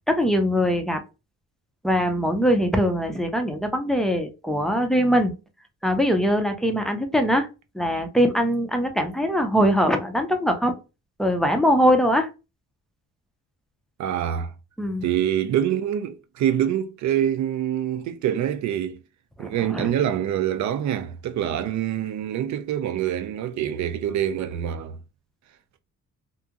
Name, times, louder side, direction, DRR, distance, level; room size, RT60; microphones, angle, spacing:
voice 1, 0.1-1.0 1.8-5.3 5.8-7.5 7.7-10.7 11.2-12.3 14.8-15.0 19.4-19.9, equal, ahead, 0.4 m, -22 dB
voice 2, 14.0-14.5 15.0-19.0 19.4-25.0, right 10 dB, 65° right, 0.4 m, -25 dB
2.8 x 2.5 x 2.4 m
cardioid pair, 135°, 32 cm